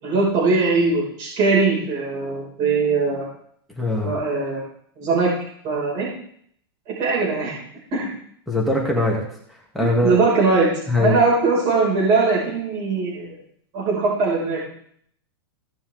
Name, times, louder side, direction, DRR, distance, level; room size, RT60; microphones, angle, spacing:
voice 1, 0.0-3.3 4.0-4.6 5.0-5.3 5.6-6.1 6.9-7.6 7.9-8.1 9.8-10.7 11.0-13.3 13.7-14.6, right 3 dB, 30° right, -6 dB, 5.9 m, -20 dB
voice 2, 3.8-4.1 8.5-9.2 9.7-10.2 10.9-11.2, left 2 dB, ahead, -3 dB, 2.7 m, -21 dB
17.5 x 6.9 x 3.8 m, 0.65 s
supercardioid pair, 160°, 14 cm